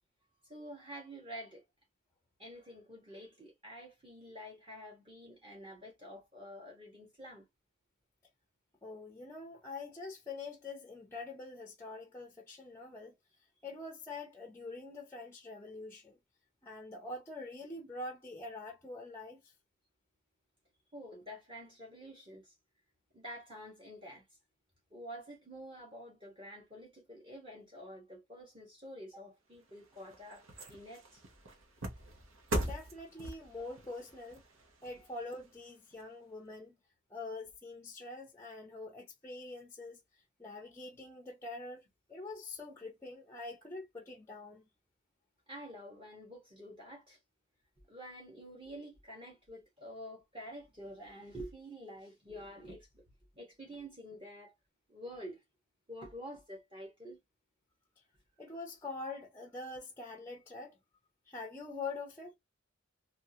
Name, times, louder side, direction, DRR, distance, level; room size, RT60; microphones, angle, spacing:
voice 1, 0.5-1.6 2.4-7.4 20.9-22.5 23.1-24.2 24.9-31.2 33.2-33.3 34.9-35.1 45.5-47.2 47.9-53.0 53.4-54.5 54.9-55.4 55.9-57.2, equal, 25° right, 1.1 m, -48 dB
voice 2, 8.8-13.1 13.6-16.2 16.6-19.4 32.6-34.4 34.8-36.7 37.1-40.0 40.4-41.8 42.1-44.6 58.4-60.7 61.3-62.3, left 3 dB, 10° left, 0.6 m, -45 dB
sound 1, 29.5-36.0 36.5-36.6, right 1 dB, 70° right, 1.0 m, -42 dB
3.6 x 2.4 x 2.8 m
head